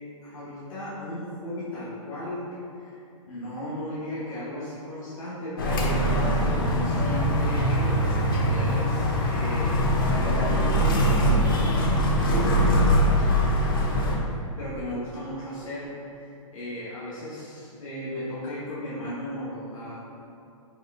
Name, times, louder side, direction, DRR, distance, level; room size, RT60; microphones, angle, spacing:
voice 1, 0.2-3.0 3.3-6.5 6.7-9.9 10.2-12.6 14.1-20.0, left 1 dB, 75° left, -9 dB, 1.0 m, -36 dB
sound 1, 5.6-14.2, equal, 40° left, 0.5 m, -22 dB
4.3 x 2.3 x 3.4 m, 2.6 s
hypercardioid pair, 170°, 17 cm